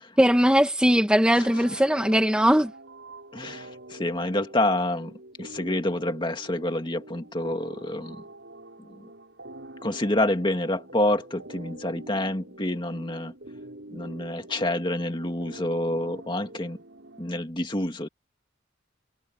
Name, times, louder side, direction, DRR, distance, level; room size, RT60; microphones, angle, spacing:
voice 1, 0.2-2.7, equal, 5° right, 1.7 m, -20 dB
sound 1, 1.4-17.4, right 1 dB, 70° right, 6.1 m, -45 dB
voice 2, 3.3-5.1 5.4-8.2 8.8-8.9 9.8-13.3 13.9-16.8 17.2-18.1, left 1 dB, 25° left, 2.3 m, -28 dB
head